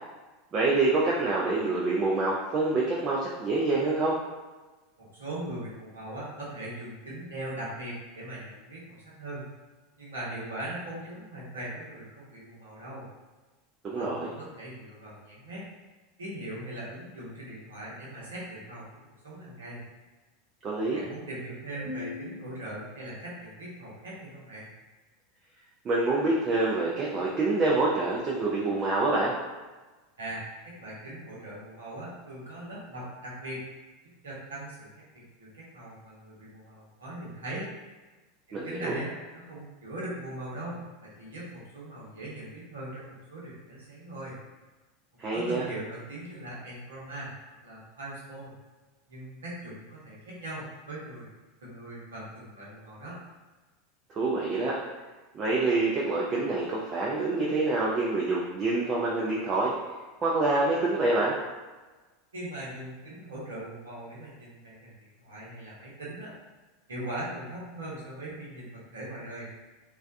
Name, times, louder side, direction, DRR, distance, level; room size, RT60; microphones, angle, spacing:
voice 1, 0.5-4.1 13.8-14.3 20.6-21.0 25.8-29.3 38.5-39.0 45.2-45.7 54.1-54.8 55.3-59.7 60.2-61.3, right 2 dB, 35° right, -5 dB, 0.4 m, -26 dB
voice 2, 5.0-9.5 10.0-13.1 13.9-15.6 16.2-19.8 20.9-24.7 30.2-33.6 34.0-37.7 38.5-44.4 45.3-47.3 47.6-48.5 49.1-51.3 51.6-53.2 62.3-66.3 66.9-69.5, right 1 dB, 80° right, -6 dB, 0.8 m, -40 dB
2.3 x 2.2 x 2.5 m, 1.2 s
figure-of-eight pair, 85°, 0 cm